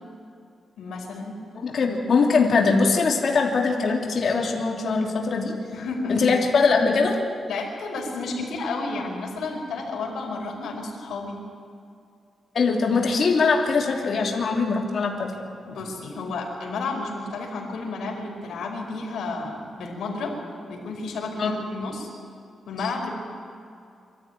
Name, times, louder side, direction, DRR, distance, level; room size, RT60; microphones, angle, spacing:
voice 1, 0.8-1.4 5.7-6.6 7.5-11.4 15.6-20.4 20.7-22.1 22.6-23.1, left 3 dB, 85° left, 0 dB, 4.9 m, -31 dB
voice 2, 1.5-5.5 6.1-7.2 12.5-15.3 21.4-21.5, left 4 dB, 50° left, 0 dB, 3.0 m, -22 dB
25.0 x 13.5 x 9.4 m, 2.5 s
wide cardioid pair, 145°, 0 cm